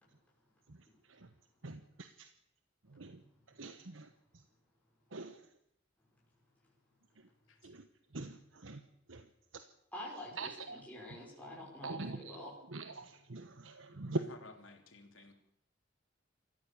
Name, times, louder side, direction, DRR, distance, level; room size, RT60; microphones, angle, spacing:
voice 1, 1.6-2.3 2.9-3.2 3.6-4.1 5.1-5.4 7.6-7.9 8.1-8.8 9.1-9.2 9.5-9.6 10.4-10.8 11.8-12.4 12.7-14.2, right 2 dB, 85° right, 9 dB, 1.2 m, -43 dB
voice 2, 9.9-12.5, left 1 dB, 10° left, -5 dB, 5.8 m, -47 dB
voice 3, 14.1-15.3, left 3 dB, 85° left, 4 dB, 3.4 m, -55 dB
27.0 x 14.5 x 7.0 m, 0.76 s
head